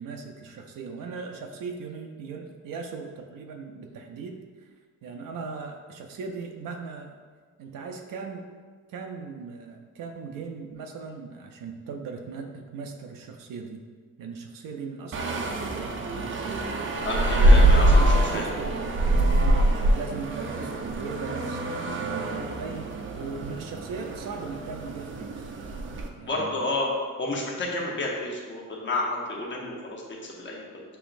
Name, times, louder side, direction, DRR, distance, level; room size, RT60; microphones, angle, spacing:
voice 1, 0.0-4.4 5.0-7.1 7.6-8.5 8.9-13.8 14.2-16.8 17.3-18.8 19.3-25.5 26.2-26.7, right 5 dB, 85° right, 3 dB, 0.5 m, -38 dB
sound 1, 15.1-26.1, right 1 dB, 40° right, 0.4 m, -24 dB
voice 2, 17.0-18.5 26.3-26.9 27.2-30.8, left 2 dB, 35° left, -2 dB, 0.9 m, -30 dB
6.8 x 3.0 x 2.5 m, 1.5 s
wide cardioid pair, 140°, 32 cm